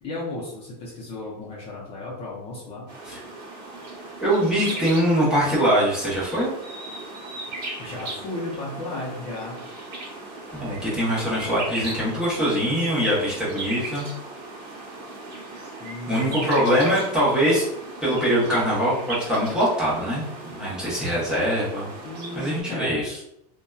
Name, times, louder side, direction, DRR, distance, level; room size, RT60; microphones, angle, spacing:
voice 1, 0.0-2.9 7.8-9.6 15.8-16.8 22.0-23.0, left 2 dB, 30° left, -5 dB, 0.6 m, -34 dB
sound 1, 2.9-22.6, right 2 dB, 40° right, 1.1 m, -37 dB
voice 2, 4.2-6.5 10.5-14.1 16.1-17.6 18.0-21.9 22.3-23.2, equal, 5° right, -9 dB, 0.8 m, -23 dB
2.6 x 2.2 x 2.3 m, 0.79 s
supercardioid pair, 150°, 21 cm